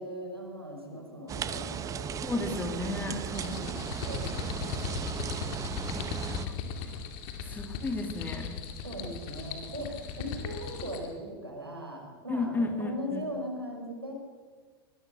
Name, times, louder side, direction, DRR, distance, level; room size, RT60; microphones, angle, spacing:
voice 1, 0.0-2.2 2.7-3.0 3.3-5.0 8.8-14.1, equal, 85° right, 2 dB, 5.1 m, -39 dB
sound 1, 1.3-6.5, right 8 dB, 25° right, 1.1 m, -36 dB
voice 2, 2.2-3.7 6.1-6.5 7.5-8.5 12.3-13.3, left 2 dB, 15° left, 5 dB, 3.0 m, -33 dB
sound 2, 3.2-11.1, left 6 dB, 50° left, 2.8 m, -38 dB
23.5 x 21.0 x 6.5 m, 1.5 s
figure-of-eight pair, 85°, 12 cm